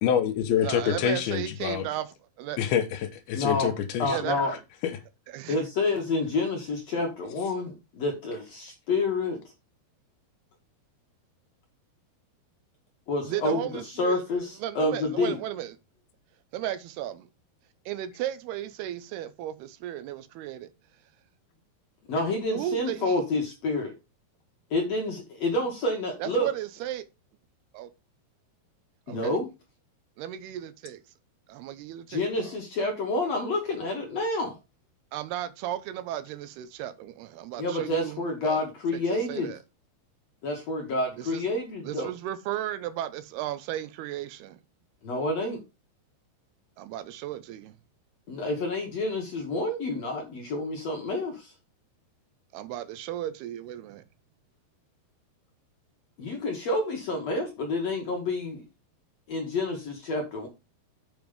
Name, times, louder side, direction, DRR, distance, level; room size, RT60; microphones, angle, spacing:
voice 1, 0.0-1.8 2.6-4.2 4.8-5.0, left 9 dB, 75° left, 2.5 m, -26 dB
voice 2, 0.6-2.6 4.1-4.4 5.3-5.6 13.2-14.2 14.6-15.8 16.5-17.3 17.9-20.7 22.5-23.2 26.2-27.0 27.7-27.9 29.1-29.4 30.2-31.0 31.5-32.5 35.1-38.6 38.9-39.0 39.3-39.6 41.2-41.4 41.8-44.6 46.8-47.7 52.5-54.0, right 12 dB, 80° right, 2.7 m, -35 dB
voice 3, 3.4-3.7 4.0-4.5 5.5-9.4 13.1-15.4 22.1-23.9 24.7-26.5 29.1-29.5 32.1-34.6 37.6-39.5 40.4-42.1 45.0-45.6 48.3-51.5 56.2-58.6 59.3-60.5, left 2 dB, 60° left, 1.9 m, -28 dB
7.2 x 6.0 x 5.1 m
omnidirectional pair, 4.8 m